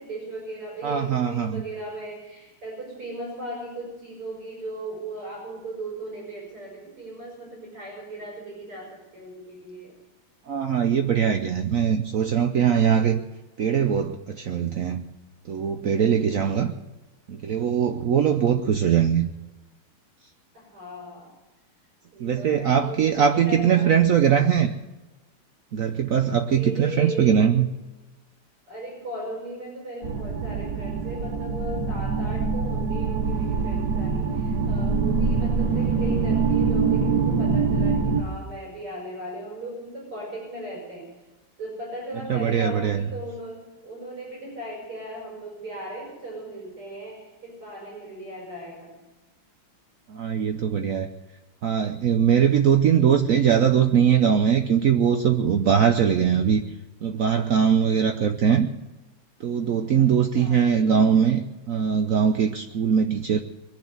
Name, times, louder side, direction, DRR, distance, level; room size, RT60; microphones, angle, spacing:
voice 1, 0.0-9.9 20.5-21.3 22.1-23.9 26.5-27.5 28.7-41.1 41.6-49.0 60.0-60.1 60.3-60.7, right 1 dB, 85° right, -3 dB, 5.9 m, -37 dB
voice 2, 0.8-1.6 10.5-13.2 13.6-15.0 15.5-16.7 17.3-19.3 22.2-24.7 25.7-27.7 42.3-43.0 50.1-51.1 51.6-56.6 57.0-58.7 59.4-63.4, right 8 dB, 70° right, 6 dB, 0.8 m, -21 dB
sound 1, 30.0-38.2, right 5 dB, 55° right, 1.8 m, -24 dB
22.5 x 7.6 x 7.9 m, 1.1 s
omnidirectional pair, 2.4 m